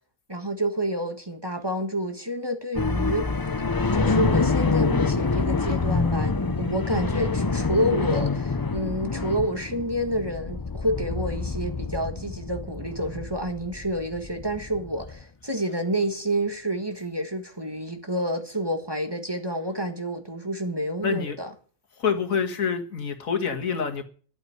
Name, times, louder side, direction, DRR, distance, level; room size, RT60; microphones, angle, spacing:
voice 1, 0.3-3.3 3.9-21.5, equal, 20° right, 1.6 m, -29 dB
sound 1, 2.7-15.2, left 4 dB, 35° left, 0.3 m, -26 dB
voice 2, 21.0-21.4 22.0-24.0, left 6 dB, 80° left, 2.1 m, -26 dB
12.0 x 8.2 x 9.5 m
omnidirectional pair, 1.4 m